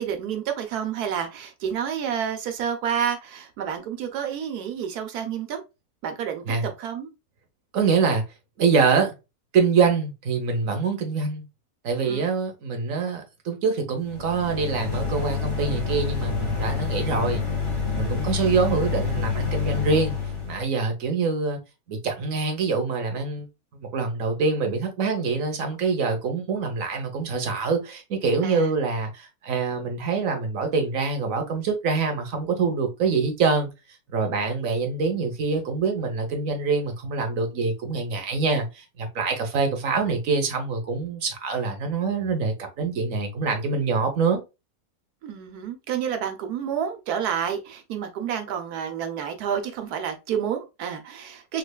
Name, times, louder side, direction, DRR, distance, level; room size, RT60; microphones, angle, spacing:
voice 1, 0.0-5.6 6.0-6.4 6.8-7.1 12.0-12.3 28.4-28.7 45.2-51.6, right 8 dB, 85° right, 1.3 m, -29 dB
voice 2, 7.7-8.2 8.6-9.1 9.5-11.5 11.8-17.4 17.9-20.2 20.5-21.6 21.9-23.5 23.8-33.7 34.1-44.4, right 4 dB, 65° right, 1.3 m, -25 dB
sound 1, 14.0-20.7, left 5 dB, 20° left, 1.0 m, -28 dB
3.4 x 3.3 x 2.2 m
omnidirectional pair, 1.6 m